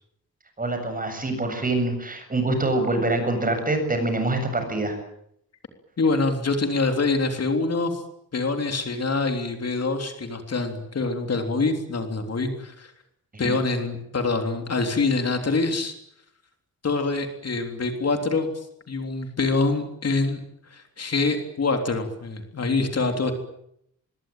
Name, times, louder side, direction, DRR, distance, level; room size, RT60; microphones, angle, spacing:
voice 1, 0.6-5.0 13.3-13.5, right 2 dB, 25° right, 7 dB, 7.5 m, -25 dB
voice 2, 6.0-8.0 8.3-12.9 13.4-15.9 16.8-20.4 20.7-23.3, left 3 dB, 45° left, 5 dB, 3.5 m, -25 dB
25.0 x 22.0 x 9.2 m, 0.73 s
wide cardioid pair, 145°, 34 cm